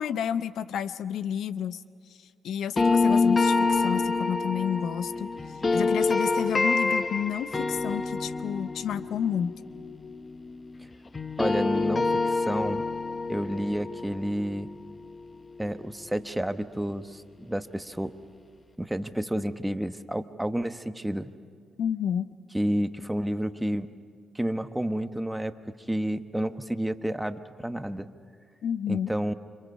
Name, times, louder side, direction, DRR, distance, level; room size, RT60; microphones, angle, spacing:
voice 1, 0.0-1.8 2.1-9.6 21.8-22.3 28.6-29.1, left 8 dB, 80° left, 14 dB, 0.6 m, -30 dB
sound 1, 2.8-10.8 11.1-16.1, left 3 dB, 35° left, 0.8 m, -27 dB
voice 2, 11.4-12.9 13.3-14.7 15.6-18.1 18.8-21.3 22.5-23.9 24.3-25.6 25.9-28.1 28.9-29.3, right 1 dB, 10° right, 9 dB, 1.2 m, -30 dB
30.0 x 26.0 x 5.5 m, 2.2 s
cardioid pair, 70°, 0 cm